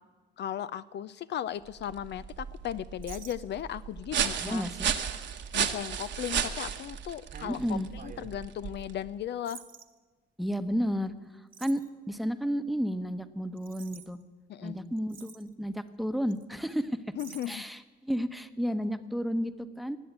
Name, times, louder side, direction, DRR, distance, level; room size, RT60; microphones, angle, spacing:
voice 1, 0.4-4.6 5.5-9.6 14.5-14.8 17.2-17.6, left 10 dB, 60° left, 15 dB, 0.5 m, -36 dB
sound 1, 1.7-9.1, right 8 dB, 65° right, 1.3 m, -34 dB
sound 2, 3.0-3.8 4.4-4.6 5.3-5.4 5.8-6.1 7.3-8.3 9.4-9.8 11.5-11.9 13.6-14.1 14.7-14.8 15.0-15.5 16.3-16.4 16.7-16.8 17.2-17.6, right 6 dB, 45° right, 1.3 m, -48 dB
voice 2, 4.4-4.9 7.5-7.9 10.4-11.1 11.6-14.2 14.6-17.0 17.5-20.0, equal, ahead, 11 dB, 1.0 m, -32 dB
19.0 x 7.9 x 8.1 m, 1.3 s
cardioid pair, 90°, 20 cm